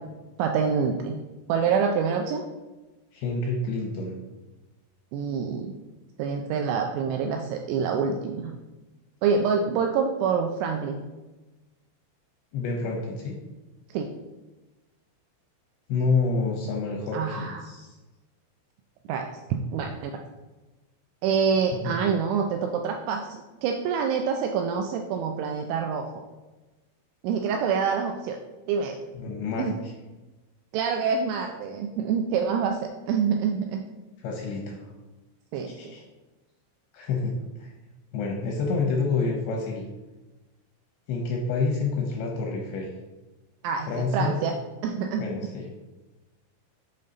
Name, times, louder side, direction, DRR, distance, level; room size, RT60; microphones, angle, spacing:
voice 1, 0.4-1.2 1.5-2.4 5.1-5.7 6.2-8.5 9.2-11.0 13.9-14.1 17.1-17.7 19.1-20.2 21.2-26.1 27.2-28.4 28.7-29.0 29.6-29.8 30.7-32.8 33.1-33.8 35.5-35.9 43.6-44.5 44.8-45.3, right 6 dB, 85° right, 3 dB, 2.7 m, -26 dB
voice 2, 3.1-4.2 12.5-13.4 15.9-18.0 21.8-21.9 29.2-29.9 34.2-34.9 35.7-36.0 36.9-37.7 38.1-39.8 41.1-42.9 43.9-44.4 45.2-45.7, left 4 dB, 80° left, 0 dB, 2.6 m, -28 dB
7.5 x 5.4 x 4.0 m, 1.1 s
omnidirectional pair, 5.9 m